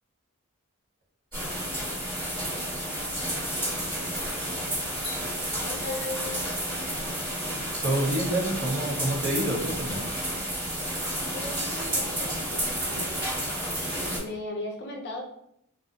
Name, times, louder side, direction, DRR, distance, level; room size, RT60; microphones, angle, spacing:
sound 1, 1.3-14.2, equal, 20° right, 1.5 m, -31 dB
voice 1, 5.7-6.4 11.3-13.4 14.2-15.2, left 2 dB, 50° left, 0 dB, 0.6 m, -37 dB
voice 2, 7.8-10.0, right 1 dB, 55° right, -3 dB, 0.8 m, -27 dB
2.5 x 2.4 x 2.4 m, 0.73 s
head